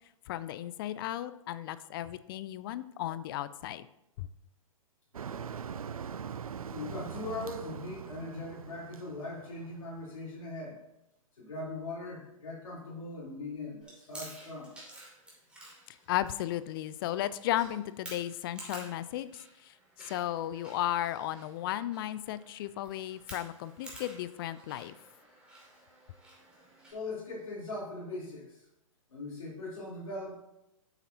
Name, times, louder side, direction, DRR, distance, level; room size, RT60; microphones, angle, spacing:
voice 1, 0.3-3.9 4.2-4.3 15.9-19.3 19.6-19.7 20.0-25.0, left 13 dB, 40° left, 15 dB, 0.4 m, -35 dB
Motor vehicle (road), 5.1-10.1, right 7 dB, 85° right, 0.4 m, -42 dB
voice 2, 6.7-10.8 11.4-14.7 26.9-28.6 29.1-30.3, left 2 dB, 75° left, -5 dB, 3.3 m, -40 dB
Chewing mastication, 13.8-26.9, right 1 dB, 5° right, 2.5 m, -52 dB
8.3 x 7.9 x 2.8 m, 0.87 s
hypercardioid pair, 115°, 18 cm